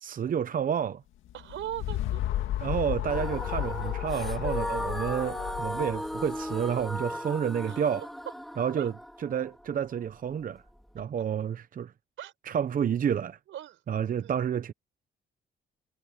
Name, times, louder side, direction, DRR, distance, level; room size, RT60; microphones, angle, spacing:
voice 1, 0.0-1.0 2.6-8.0 8.6-8.9 9.2-10.6 10.9-11.9 12.5-13.4 13.9-14.7, right 8 dB, 45° right, 0.7 m, -30 dB
sound 1, 1.3-6.9, left 13 dB, 85° left, 1.9 m, -33 dB
voice 2, 1.3-2.2 7.7-7.9 8.8-8.9 12.2-12.3 13.5-13.8 14.2-14.3, right 13 dB, 80° right, 4.9 m, -39 dB
sound 2, 3.1-11.0, equal, ahead, 3.4 m, -37 dB
cardioid pair, 90°, 20 cm